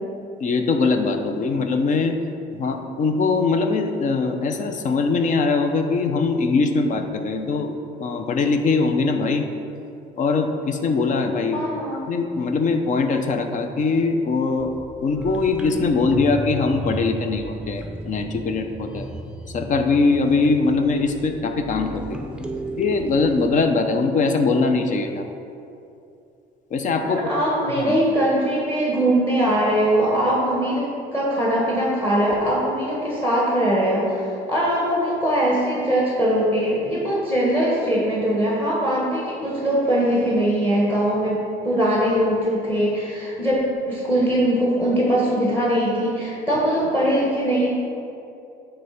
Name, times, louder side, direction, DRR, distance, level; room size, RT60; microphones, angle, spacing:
voice 1, 0.4-2.2 2.5-7.7 8.0-9.5 10.2-11.6 12.1-14.7 15.0-19.1 19.5-22.2 22.8-25.3 26.7-27.2 27.8-28.0, left 4 dB, 50° left, 6 dB, 0.7 m, -22 dB
voice 2, 11.5-12.0 27.0-41.4 41.6-43.6 43.8-47.7, right 1 dB, 15° left, -5 dB, 1.5 m, -21 dB
sound 1, 14.6-23.7, right 2 dB, 5° right, 0.5 m, -34 dB
9.0 x 3.4 x 5.8 m, 2.6 s
cardioid pair, 110°, 17 cm